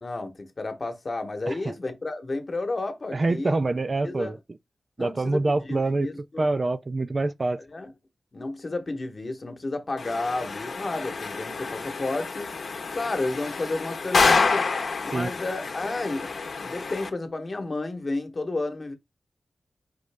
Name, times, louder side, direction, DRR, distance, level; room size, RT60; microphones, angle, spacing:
voice 1, 0.0-3.6 4.0-4.4 5.0-6.5 7.7-7.9 8.3-12.5 12.9-14.7 15.0-16.3 16.6-18.9, left 2 dB, 40° left, 1.0 m, -32 dB
voice 2, 3.1-4.4 5.0-6.1 6.4-7.6 15.1-15.3, right 2 dB, 35° right, 0.3 m, -25 dB
sound 1, 10.0-17.1, left 4 dB, 70° left, 0.8 m, -28 dB
5.1 x 3.1 x 3.3 m
wide cardioid pair, 115°, 0 cm